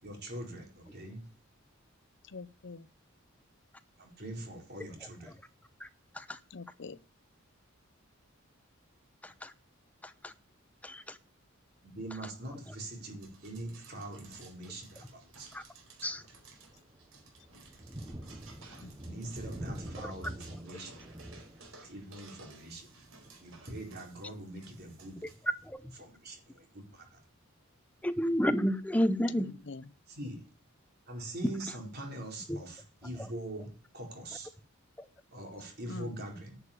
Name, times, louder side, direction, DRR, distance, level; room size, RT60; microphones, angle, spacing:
voice 1, 0.0-1.3 4.0-5.4 11.8-15.5 16.0-16.2 19.0-21.1 21.8-23.0 23.4-25.2 26.0-27.2 30.1-30.5 31.1-34.5 35.3-36.6, right 1 dB, 50° right, 4.4 m, -43 dB
voice 2, 2.2-2.9 6.5-7.0 18.8-19.2 29.7-29.8 35.9-36.2, left 3 dB, 60° left, 0.6 m, -45 dB
voice 3, 9.2-9.5 10.0-10.3 10.8-11.2 15.5-15.6 16.0-16.2 20.0-20.1 25.6-25.8 28.0-29.5 31.4-31.5 32.5-32.6 33.2-33.3 35.0-35.1, equal, 5° left, 0.8 m, -31 dB
sound 1, 13.2-25.7, right 4 dB, 80° right, 4.4 m, -56 dB
Thunder, 14.3-14.4 15.0-15.1 15.6-26.1, right 1 dB, 20° right, 0.9 m, -48 dB
11.0 x 6.9 x 8.6 m
head